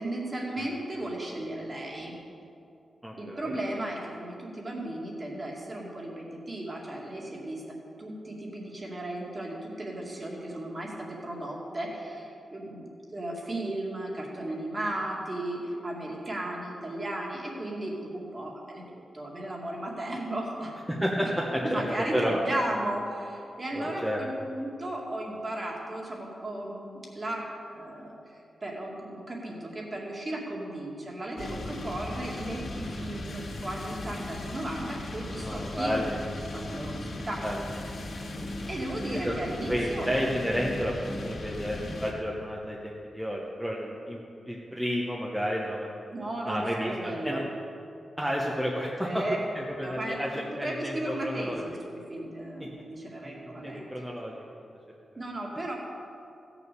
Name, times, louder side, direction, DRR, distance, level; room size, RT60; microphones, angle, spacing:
voice 1, 0.0-2.2 3.2-20.7 21.2-28.2 28.6-36.0 36.5-37.4 38.6-40.1 46.1-47.5 49.0-49.4 49.8-53.8 55.2-55.8, right 1 dB, 30° right, -2 dB, 2.3 m, -35 dB
voice 2, 3.0-3.5 21.0-21.8 22.1-22.4 23.7-24.2 35.4-36.2 37.4-37.6 39.1-39.3 39.7-44.2 44.5-45.9 46.5-47.4 48.2-49.2 49.5-51.6 53.2-54.7, equal, 5° right, -3 dB, 1.0 m, -31 dB
sound 1, 31.4-42.1, left 1 dB, 55° left, 2.4 m, -37 dB
15.5 x 7.0 x 6.8 m, 2.7 s
wide cardioid pair, 140°, 0 cm